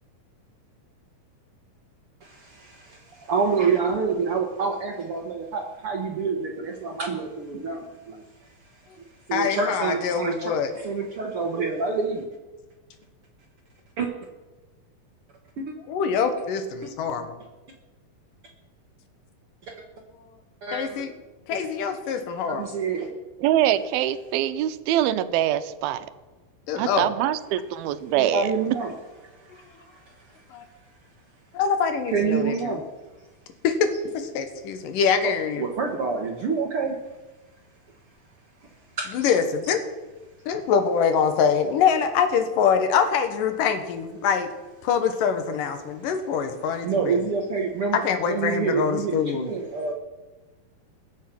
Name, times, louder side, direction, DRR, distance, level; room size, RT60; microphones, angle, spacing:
voice 1, 3.3-8.3 9.3-12.3 14.0-14.1 15.6-15.7 16.8-16.9 19.7-19.8 20.6-20.8 22.5-23.1 28.2-28.9 29.2-30.1 32.1-32.8 35.6-36.9 38.6-38.7 39.0-39.1 46.8-49.9, right 5 dB, 70° right, 2 dB, 1.3 m, -27 dB
voice 2, 9.3-10.7 15.9-17.3 20.7-21.1 21.5-22.7 26.7-27.1 30.5-30.6 31.5-32.8 33.6-35.7 39.1-39.8 40.5-44.5 44.8-47.2 47.9-49.5, left 6 dB, 70° left, 8 dB, 2.8 m, -24 dB
voice 3, 23.4-26.1 26.8-28.5, right 12 dB, 85° right, 13 dB, 2.6 m, -24 dB
21.0 x 7.4 x 5.9 m, 1.2 s
omnidirectional pair, 4.2 m